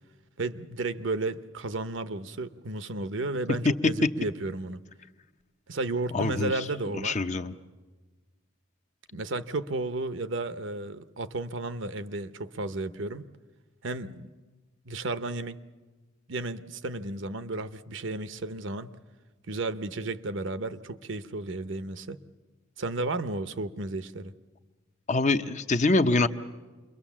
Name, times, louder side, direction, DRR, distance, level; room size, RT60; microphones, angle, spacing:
voice 1, 0.4-4.8 5.7-7.2 9.1-13.2 13.8-14.3 14.9-15.6 16.3-18.9 19.5-22.2 22.8-24.3, right 2 dB, 60° right, 0.8 m, -33 dB
voice 2, 6.1-6.5 7.0-7.5 25.1-26.3, left 2 dB, 35° left, 0.7 m, -24 dB
28.0 x 22.5 x 7.3 m
head